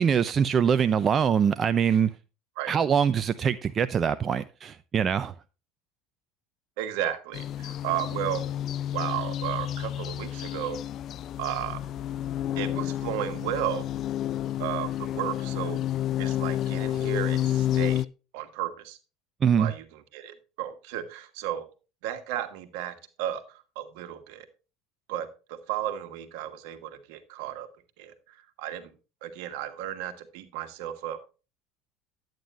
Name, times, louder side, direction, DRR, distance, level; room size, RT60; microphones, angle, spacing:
voice 1, 0.0-2.1 2.7-5.3 19.4-19.7, right 7 dB, 35° right, 0.5 m, -23 dB
voice 2, 6.8-8.5 8.9-10.8 11.4-11.8 12.6-13.9 14.6-15.8 16.2-18.0 18.3-19.0 19.6-21.7 22.0-24.5 25.1-27.7 28.0-28.9 29.2-31.2, right 11 dB, 75° right, 1.5 m, -34 dB
sound 1, 7.3-18.0, left 11 dB, 50° left, 0.4 m, -30 dB
11.0 x 9.1 x 2.5 m
hypercardioid pair, 85°, 0 cm